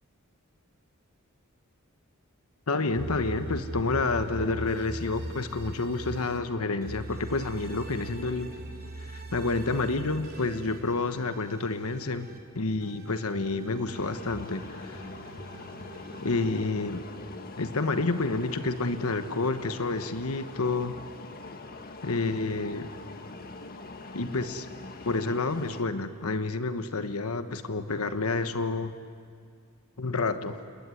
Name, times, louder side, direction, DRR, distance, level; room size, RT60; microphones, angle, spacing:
voice 1, 2.7-8.5 9.1-12.3 12.5-15.0 16.2-17.0 17.6-21.0 22.0-22.9 24.1-24.7 25.0-28.9 30.0-30.6, left 3 dB, 85° left, 9 dB, 1.2 m, -29 dB
sound 1, 3.0-6.4 6.8-12.4 12.8-16.7, right 1 dB, 45° right, 3.1 m, -41 dB
sound 2, 13.9-25.8, left 3 dB, 45° left, 1.8 m, -43 dB
28.0 x 21.5 x 9.7 m, 2.1 s
head